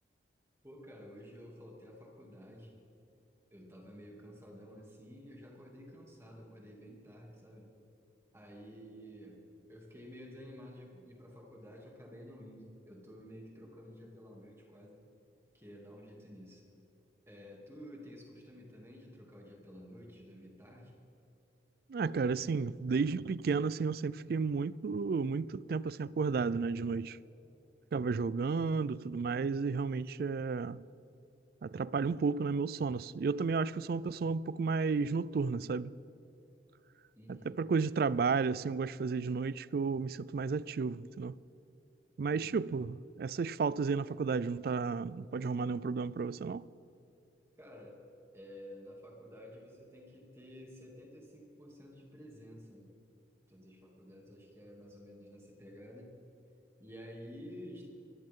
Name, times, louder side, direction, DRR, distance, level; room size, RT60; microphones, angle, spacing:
voice 1, 0.6-2.8 3.5-7.7 8.3-15.0 15.5-16.6 17.3-20.9 37.2-37.6 42.3-42.7 47.6-48.0 48.3-52.9 53.5-56.2 56.8-57.9, equal, 15° right, 2.7 m, -51 dB
voice 2, 21.9-27.2 27.9-30.8 31.6-35.9 37.3-41.4 42.2-46.7, right 4 dB, 50° right, 0.3 m, -32 dB
24.0 x 13.0 x 3.7 m
head